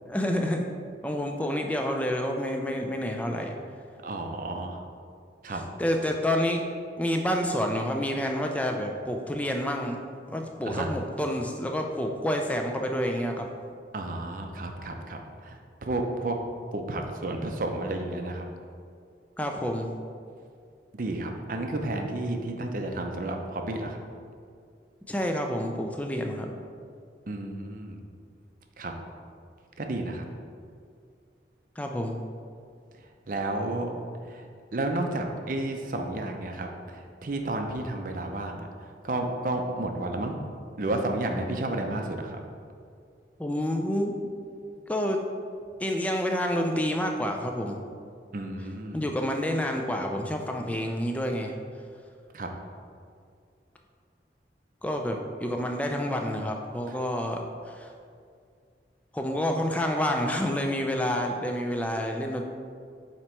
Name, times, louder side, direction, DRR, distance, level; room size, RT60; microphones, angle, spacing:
voice 1, 0.1-0.6 1.0-3.5 5.5-6.6 7.0-10.0 10.3-13.5 19.4-19.9 25.1-26.5 31.8-32.2 43.4-44.1 44.9-45.2 45.8-47.8 48.9-51.5 54.8-57.4 57.7-57.9 59.1-62.5, equal, 10° left, 2 dB, 0.4 m, -28 dB
voice 2, 4.0-4.8 5.4-5.6 10.6-10.9 13.9-16.4 16.7-18.5 20.9-24.0 27.3-28.0 28.8-28.9 29.8-30.2 33.3-33.9 34.3-34.5 34.7-40.4 40.8-42.4 48.3-49.0 52.3-52.5, right 2 dB, 50° right, 3 dB, 0.5 m, -32 dB
7.7 x 3.0 x 4.4 m, 2.3 s
head